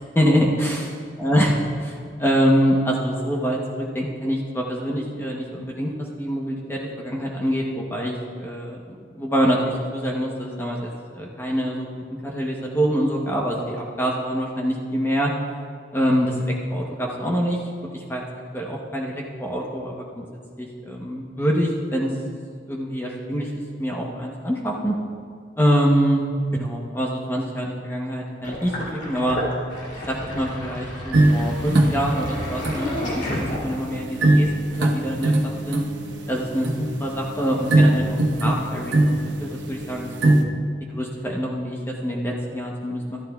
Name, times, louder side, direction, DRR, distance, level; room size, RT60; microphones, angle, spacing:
voice 1, 0.1-0.9 1.2-1.5 1.9-11.9 12.2-15.3 15.9-17.6 17.9-18.2 18.5-20.2 20.6-22.1 22.7-23.5 23.8-24.9 25.6-26.2 26.5-29.4 30.1-35.8 36.3-40.3 40.9-43.2, equal, 15° left, -2 dB, 0.9 m, -25 dB
Sink (filling or washing), 28.4-34.0, left 1 dB, 85° left, 2.8 m, -31 dB
sound 1, 31.1-40.4, right 1 dB, 85° right, 1.0 m, -22 dB
14.0 x 13.0 x 2.3 m, 2.2 s
head